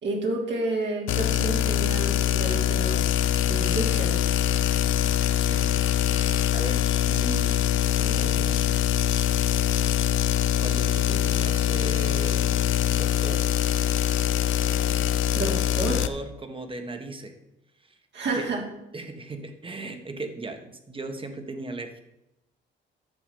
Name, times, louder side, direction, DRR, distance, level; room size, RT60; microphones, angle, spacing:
voice 1, 0.0-3.0 3.5-4.2 15.3-16.0 18.1-18.6, right 2 dB, 65° right, -2 dB, 3.3 m, -30 dB
sound 1, 1.1-16.1, left 11 dB, 80° left, 0.7 m, -23 dB
voice 2, 6.1-7.6 8.0-8.7 9.2-9.4 9.8-9.9 10.6-13.4 15.4-17.3 17.8-18.0 18.4-18.5 18.9-22.0, right 2 dB, 25° right, 6 dB, 1.7 m, -38 dB
11.0 x 7.1 x 5.5 m, 0.88 s
cardioid pair, 90°, 20 cm